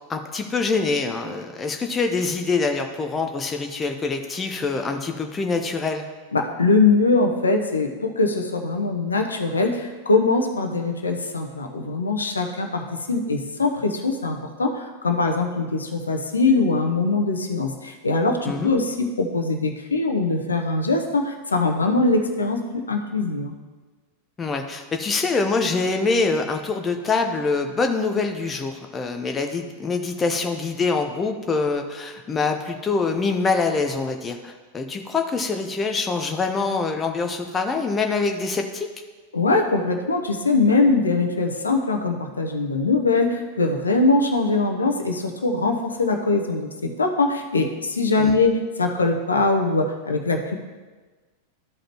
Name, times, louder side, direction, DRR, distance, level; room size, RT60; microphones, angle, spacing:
voice 1, 0.1-6.0 18.4-18.7 24.4-38.9 48.2-48.4, left 4 dB, 20° left, 4 dB, 0.6 m, -25 dB
voice 2, 6.3-12.8 13.1-23.5 39.3-50.6, left 3 dB, 75° left, 4 dB, 0.8 m, -22 dB
13.0 x 5.0 x 3.0 m, 1.3 s
figure-of-eight pair, 90°, 0 cm